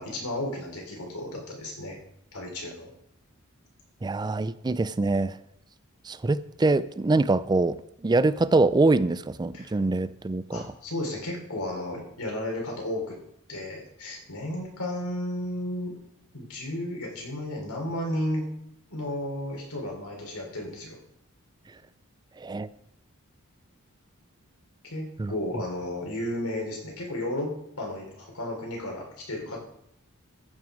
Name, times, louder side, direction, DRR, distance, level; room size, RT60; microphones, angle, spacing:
voice 1, 0.0-2.0 2.3-2.9 9.5-9.7 10.5-13.2 13.5-15.9 16.3-18.5 18.9-21.0 24.8-29.6, left 1 dB, 90° left, 0 dB, 3.9 m, -33 dB
voice 2, 4.0-5.4 6.0-10.6 22.4-22.7 25.2-25.3, right 2 dB, 20° right, 15 dB, 0.4 m, -24 dB
14.5 x 5.9 x 5.2 m, 0.76 s
head